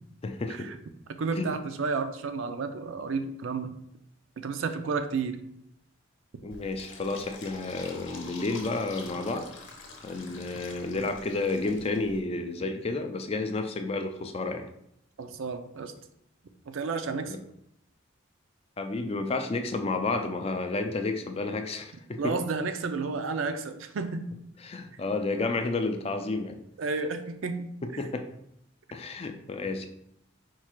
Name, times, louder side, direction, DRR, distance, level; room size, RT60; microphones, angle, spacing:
voice 1, 0.2-0.7 1.4-1.6 6.4-9.5 10.0-14.7 17.3-17.4 18.8-22.4 24.6-26.6 28.0-28.3 28.9-29.9, left 3 dB, 30° left, 6 dB, 0.4 m, -31 dB
voice 2, 1.1-3.7 4.4-5.4 15.2-15.9 16.7-17.4 22.2-24.3 26.8-27.7, right 4 dB, 75° right, 9 dB, 0.4 m, -31 dB
Fill (with liquid), 6.5-12.2, left 3 dB, 65° left, 0.8 m, -46 dB
4.6 x 2.4 x 4.4 m, 0.76 s
head